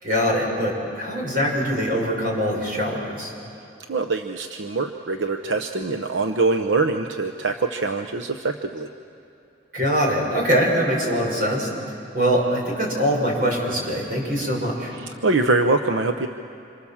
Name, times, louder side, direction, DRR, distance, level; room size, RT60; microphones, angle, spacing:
voice 1, 0.0-3.3 9.7-11.7 12.1-14.9, equal, 45° right, -1 dB, 6.1 m, -23 dB
voice 2, 3.9-8.9 15.0-16.3, right 3 dB, 80° right, 6 dB, 0.9 m, -23 dB
28.5 x 27.0 x 7.3 m, 2.8 s
head